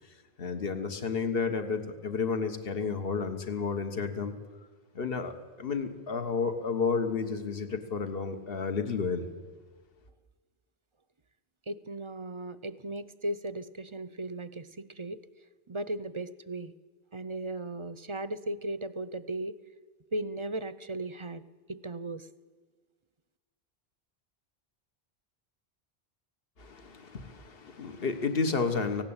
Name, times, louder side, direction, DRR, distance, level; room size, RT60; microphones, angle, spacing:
voice 1, 0.4-4.3 4.9-5.3 5.6-9.2 26.6-29.0, left 5 dB, 65° left, 8 dB, 1.6 m, -31 dB
voice 2, 11.7-15.2 15.7-16.7 17.1-19.6 20.1-21.4 21.7-22.3, right 1 dB, 35° right, 15 dB, 0.6 m, -36 dB
18.0 x 16.5 x 8.9 m, 1.4 s
omnidirectional pair, 1.0 m